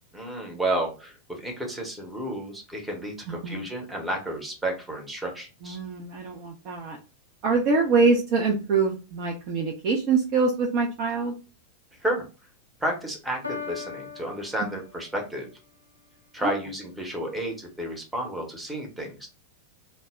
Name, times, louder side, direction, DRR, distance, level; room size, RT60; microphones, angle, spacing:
voice 1, 0.1-5.8 7.5-7.6 12.0-12.3 12.8-15.5 16.3-19.3, right 1 dB, 10° right, 1 dB, 0.8 m, -31 dB
voice 2, 5.6-7.0 7.4-11.3 14.6-14.7 16.4-16.5, right 4 dB, 40° right, -1 dB, 0.5 m, -24 dB
Piano, 13.4-15.4, left 5 dB, 85° left, 0.4 m, -39 dB
2.1 x 2.0 x 3.4 m, 0.33 s
figure-of-eight pair, 90°, 0 cm